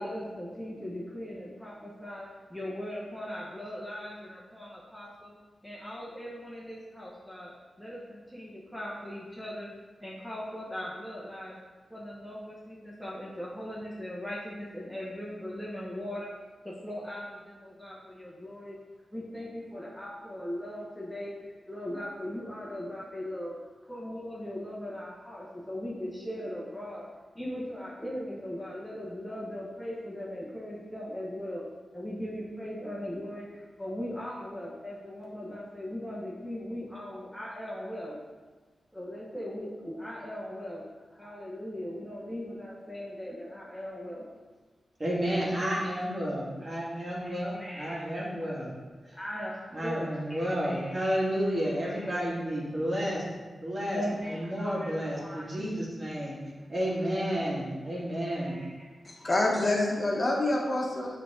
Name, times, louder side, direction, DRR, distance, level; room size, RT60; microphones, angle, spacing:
voice 1, 0.0-5.3 5.6-7.5 7.8-9.7 10.0-11.6 11.9-16.3 16.6-18.8 19.1-23.5 23.9-27.1 27.3-31.6 31.9-38.2 38.9-40.8 41.1-44.2 45.0-45.6 47.2-48.1 49.1-52.2 53.9-55.5 57.2-57.5 58.2-59.5, equal, ahead, -5 dB, 1.1 m, -39 dB
voice 2, 45.0-48.7 49.0-49.1 49.7-53.2 53.6-54.0 54.3-56.3 56.7-58.6, equal, 40° right, -5 dB, 2.1 m, -31 dB
voice 3, 59.0-61.1, left 2 dB, 40° left, -2 dB, 1.2 m, -27 dB
6.7 x 3.5 x 5.0 m, 1.3 s
cardioid pair, 70°, 0 cm